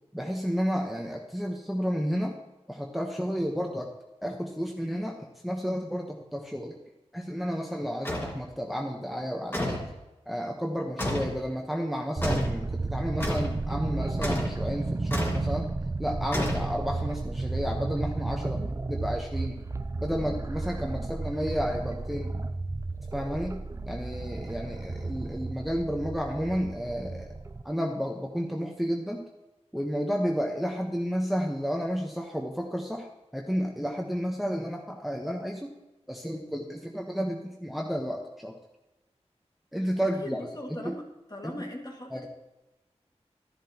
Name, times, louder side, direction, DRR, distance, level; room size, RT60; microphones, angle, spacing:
voice 1, 0.1-2.4 2.7-3.9 4.2-6.8 7.1-9.8 10.3-15.7 16.0-18.6 18.9-19.6 20.0-22.3 23.1-27.3 27.6-29.2 29.7-33.1 33.3-35.7 36.1-38.5 39.7-40.5 40.8-40.9 41.4-41.5 42.1-42.3, equal, ahead, 0 dB, 1.1 m, -31 dB
sound 1, 8.1-8.4 9.5-9.9 11.0-11.4 12.2-12.6 13.2-13.6 14.2-14.6 15.1-15.5 16.3-17.0, left 1 dB, 20° left, 1.9 m, -31 dB
sound 2, 12.2-27.6, right 3 dB, 25° right, 0.5 m, -33 dB
voice 2, 40.2-41.0 41.3-42.3, left 1 dB, 35° left, 0 dB, 2.1 m, -39 dB
13.0 x 11.0 x 3.0 m, 1.0 s
wide cardioid pair, 80°, 12 cm